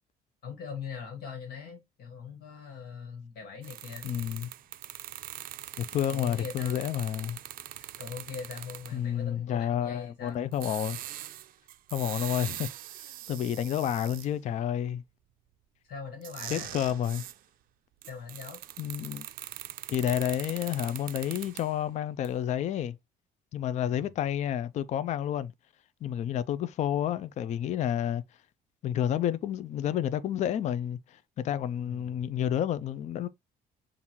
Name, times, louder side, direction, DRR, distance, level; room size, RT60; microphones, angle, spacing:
voice 1, 0.4-4.1 6.1-6.8 8.0-10.4 15.8-16.7 18.1-18.6 23.8-24.0 31.9-32.2, left 6 dB, 65° left, 1.6 m, -41 dB
sound 1, 3.6-9.0 10.5-14.3 16.2-17.4 18.0-21.8 22.2-22.3, right 13 dB, 55° right, 0.4 m, -42 dB
voice 2, 4.0-4.5 5.8-7.4 8.9-11.0 11.9-12.7 13.3-15.0 16.5-17.2 18.8-19.3 19.9-23.0 23.5-25.5 26.0-28.2 28.8-33.3, left 10 dB, 45° left, 0.4 m, -30 dB
6.9 x 2.5 x 2.9 m
cardioid pair, 110°, 17 cm